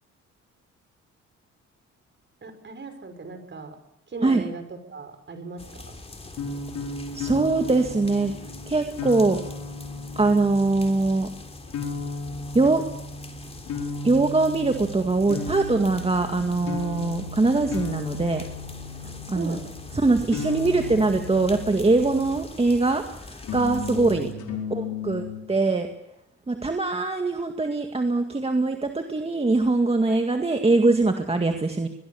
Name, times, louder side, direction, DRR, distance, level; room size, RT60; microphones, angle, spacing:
voice 1, 2.4-3.8 4.1-5.9 19.0-19.9 24.0-24.2 24.5-24.9, right 3 dB, 40° right, 8 dB, 5.4 m, -38 dB
sound 1, 5.6-24.3, left 2 dB, 20° left, 3.4 m, -43 dB
sound 2, 6.3-22.6 23.4-25.4, left 3 dB, 75° left, 4.6 m, -35 dB
voice 2, 7.1-8.3 8.7-9.4 10.2-11.3 12.5-12.8 14.0-18.4 19.3-19.6 19.9-24.3 24.7-25.9 26.5-31.9, right 3 dB, 20° right, 4 dB, 2.0 m, -22 dB
22.0 x 21.5 x 7.1 m, 0.85 s
cardioid pair, 90°, 30 cm